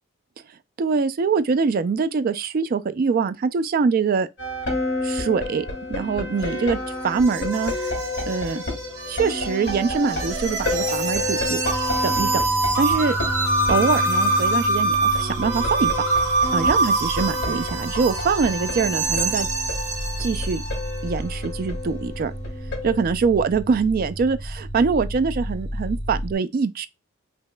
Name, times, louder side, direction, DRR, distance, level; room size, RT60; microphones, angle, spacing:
voice 1, 0.8-4.3 5.0-6.8 7.0-7.7 8.3-8.6 9.1-11.6 12.0-12.3 12.8-13.2 13.7-15.9 16.5-19.5 20.2-20.6 21.0-22.3 22.8-26.9, right 5 dB, 45° right, 0.3 m, -23 dB
sound 1, 4.4-23.0, left 2 dB, 60° left, 2.7 m, -31 dB
sound 2, 6.4-21.0, right 2 dB, 90° right, 1.2 m, -25 dB
sound 3, 10.0-26.3, right 1 dB, 30° left, 1.5 m, -33 dB
5.3 x 2.9 x 2.2 m
head